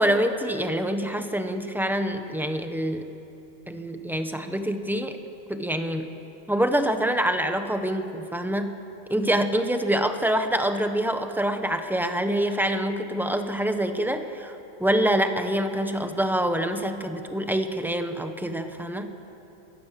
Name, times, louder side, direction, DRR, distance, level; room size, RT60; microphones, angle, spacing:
voice 1, 0.0-3.1 3.7-5.2 5.5-6.1 6.5-8.8 9.1-19.1, right 1 dB, ahead, 7 dB, 0.8 m, -26 dB
22.5 x 16.5 x 7.5 m, 2.8 s
omnidirectional pair, 1.5 m